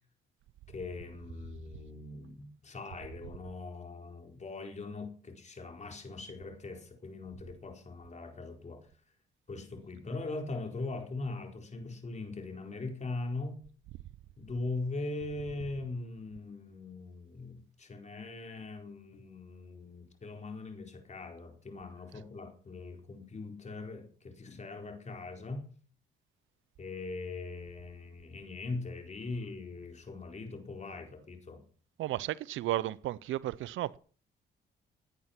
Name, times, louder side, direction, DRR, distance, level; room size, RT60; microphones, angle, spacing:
voice 1, 0.7-8.9 9.5-13.6 14.4-25.7 26.8-31.6, left 3 dB, 35° left, 4.6 m, -41 dB
voice 2, 32.0-34.0, right 14 dB, 80° right, 0.6 m, -33 dB
17.0 x 9.6 x 6.0 m
cardioid pair, 90°, 20 cm